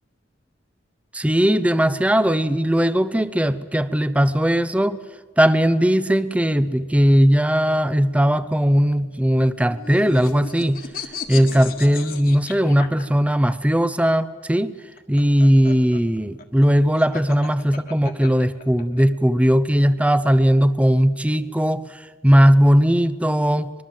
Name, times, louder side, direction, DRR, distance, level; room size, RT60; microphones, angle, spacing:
voice 1, 1.1-5.0 5.4-10.8 11.3-14.7 15.1-23.7, equal, 5° right, 14 dB, 0.6 m, -18 dB
sound 1, 9.5-13.5 14.8-19.0, left 5 dB, 50° left, 1.8 m, -36 dB
23.5 x 22.0 x 7.6 m, 1.5 s
head